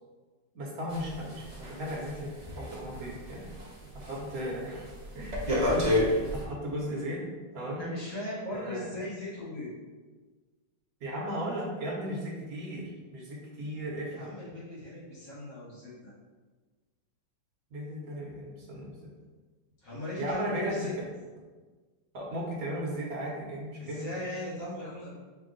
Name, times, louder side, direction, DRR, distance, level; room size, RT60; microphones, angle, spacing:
voice 1, 0.5-3.5 3.9-4.9 5.1-7.2 7.5-7.9 8.5-8.9 11.0-14.3 17.7-18.9 20.2-20.7 22.1-24.0, equal, 55° right, -3 dB, 1.4 m, -36 dB
sound 1, 0.9-3.7 4.0-4.4 4.7-6.4, left 1 dB, 40° right, 0.6 m, -29 dB
voice 2, 7.8-9.7 14.1-16.1 19.8-20.9 23.8-25.1, left 1 dB, 75° left, -9 dB, 2.3 m, -38 dB
5.3 x 2.4 x 3.8 m, 1.4 s
omnidirectional pair, 1.9 m